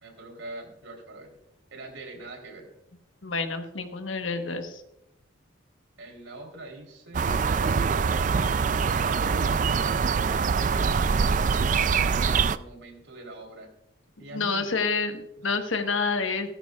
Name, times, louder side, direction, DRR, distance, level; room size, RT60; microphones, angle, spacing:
voice 1, 0.0-1.4 1.7-2.7 6.0-10.0 10.3-13.7 14.2-14.9, right 2 dB, 80° right, 2 dB, 3.4 m, -43 dB
voice 2, 3.2-4.8 14.3-16.5, left 4 dB, 80° left, 6 dB, 1.2 m, -28 dB
sound 1, 7.1-12.6, right 5 dB, 40° right, 0.3 m, -24 dB
15.0 x 13.5 x 2.4 m, 0.87 s
head